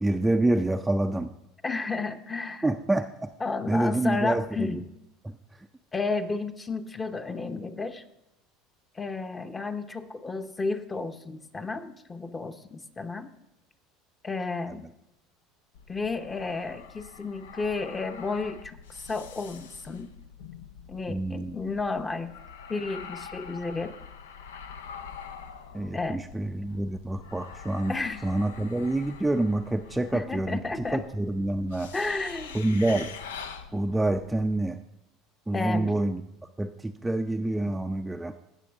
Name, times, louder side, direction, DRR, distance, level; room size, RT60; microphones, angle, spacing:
voice 1, 0.0-1.3 2.6-3.3 3.7-4.8 5.2-5.7 21.1-21.6 25.7-28.0 28.2-31.9 32.5-33.1 33.7-34.8 35.5-36.2 36.6-38.3, right 2 dB, 10° right, 6 dB, 0.4 m, -27 dB
voice 2, 1.6-2.7 3.4-4.8 5.9-8.0 8.9-13.3 14.2-14.9 15.9-18.8 19.1-20.1 20.9-22.3 22.7-23.9 25.9-26.2 27.9-28.2 30.1-31.1 31.9-32.6 35.5-36.0, left 3 dB, 20° left, 9 dB, 0.8 m, -32 dB
sound 1, 15.7-34.6, left 6 dB, 90° left, 0.6 m, -45 dB
16.5 x 6.2 x 3.5 m, 0.88 s
hypercardioid pair, 85°, 0 cm